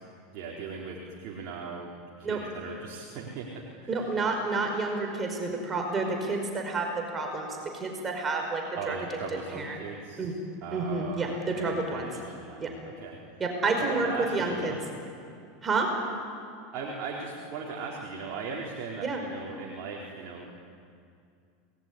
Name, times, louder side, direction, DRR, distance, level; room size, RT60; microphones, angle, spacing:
voice 1, 0.3-1.9 2.2-4.1 8.8-10.3 10.6-13.2 13.8-14.8 16.7-20.5, right 4 dB, 50° right, -2 dB, 4.3 m, -38 dB
voice 2, 3.9-9.0 9.6-9.8 10.2-10.3 10.7-12.1 12.6-12.7 13.4-14.8 15.6-15.9 19.0-19.2, right 3 dB, 25° right, 3 dB, 5.0 m, -29 dB
27.0 x 20.0 x 9.9 m, 2.4 s
figure-of-eight pair, 80°, 0 cm